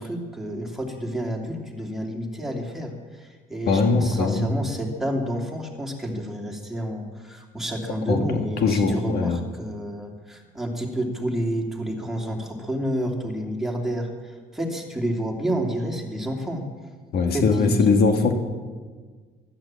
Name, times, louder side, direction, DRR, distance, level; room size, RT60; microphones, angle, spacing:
voice 1, 0.0-16.6 17.3-17.9, equal, ahead, 0 dB, 2.8 m, -29 dB
voice 2, 3.7-4.5 8.1-9.4 17.1-18.3, left 4 dB, 65° left, 4 dB, 1.7 m, -21 dB
15.0 x 12.0 x 7.6 m, 1.5 s
cardioid pair, 110°, 17 cm